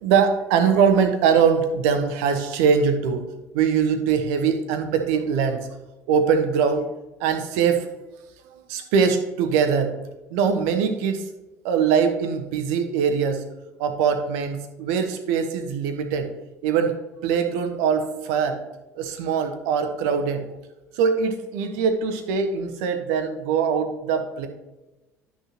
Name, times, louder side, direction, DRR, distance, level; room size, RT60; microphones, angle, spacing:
voice 1, 0.0-3.2 3.5-5.7 6.1-6.9 7.2-7.9 8.4-9.9 10.3-11.3 11.6-13.4 13.8-16.3 16.6-16.9 17.2-18.6 18.9-20.4 20.9-24.5, right 6 dB, 60° right, 7 dB, 1.1 m, -22 dB
12.5 x 6.3 x 2.9 m, 1.0 s
figure-of-eight pair, 60°, 8 cm